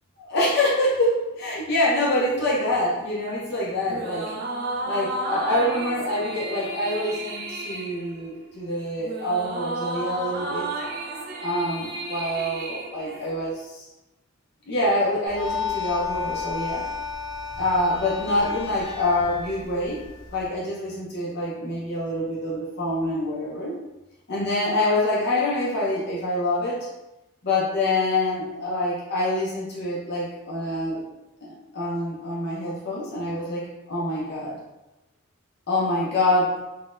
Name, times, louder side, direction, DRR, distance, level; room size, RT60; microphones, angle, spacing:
voice 1, 0.3-4.4 4.8-10.7 11.4-13.9 14.7-16.9 17.6-20.0 20.3-23.8 24.3-26.9 27.4-31.0 31.4-34.6 35.7-36.6, left 1 dB, 50° left, -5 dB, 0.5 m, -26 dB
sound 1, 3.9-13.6, right 2 dB, 45° right, 0.4 m, -33 dB
sound 2, 15.3-20.5, left 5 dB, 15° left, 1.1 m, -32 dB
3.7 x 2.1 x 2.5 m, 0.99 s
head